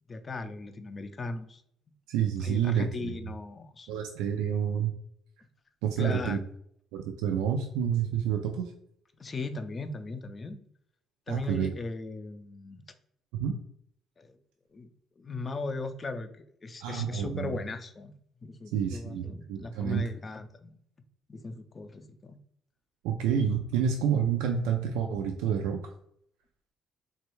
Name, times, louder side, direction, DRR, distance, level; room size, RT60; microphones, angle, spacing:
voice 1, 0.1-1.6 2.4-3.9 6.0-6.4 9.1-10.6 11.3-12.8 14.2-14.4 14.7-14.9 15.2-18.1 18.4-20.8 21.3-22.4, left 3 dB, 30° left, 8 dB, 0.4 m, -38 dB
voice 2, 2.1-3.1 3.9-4.9 5.8-6.4 6.9-8.7 11.3-11.7 13.4-13.6 16.8-17.6 18.7-20.1 23.0-25.9, right 8 dB, 90° right, 3 dB, 0.3 m, -29 dB
3.1 x 2.3 x 3.0 m, 0.68 s
supercardioid pair, 85°, 0 cm